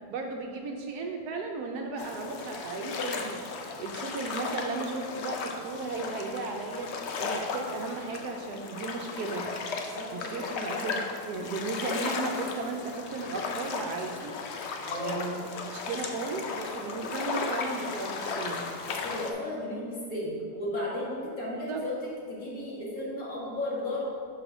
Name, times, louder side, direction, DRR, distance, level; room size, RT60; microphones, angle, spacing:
voice 1, 0.1-3.4 3.8-6.9 7.2-9.5 10.1-14.4 15.0-18.6 21.5-21.8, right 3 dB, 70° right, 3 dB, 1.1 m, -35 dB
sound 1, 2.0-19.3, left 4 dB, 75° left, 0.6 m, -35 dB
voice 2, 9.9-10.7 14.9-15.3 19.0-24.0, left 1 dB, 55° left, -6 dB, 2.0 m, -35 dB
5.3 x 5.0 x 6.0 m, 2.2 s
omnidirectional pair, 1.9 m